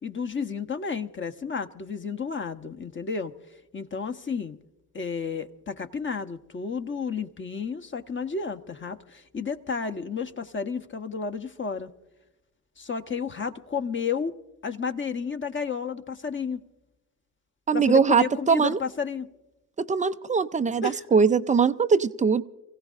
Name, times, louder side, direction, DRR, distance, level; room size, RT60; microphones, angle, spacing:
voice 1, 0.0-3.3 3.7-4.6 4.9-11.9 12.8-14.3 14.6-16.6 17.7-19.3 20.8-21.0, left 5 dB, 25° left, 9 dB, 1.0 m, -32 dB
voice 2, 17.7-18.8 19.9-22.4, right 5 dB, 15° right, 13 dB, 0.4 m, -21 dB
28.0 x 16.5 x 2.5 m, 1.0 s
hypercardioid pair, 55°, 48 cm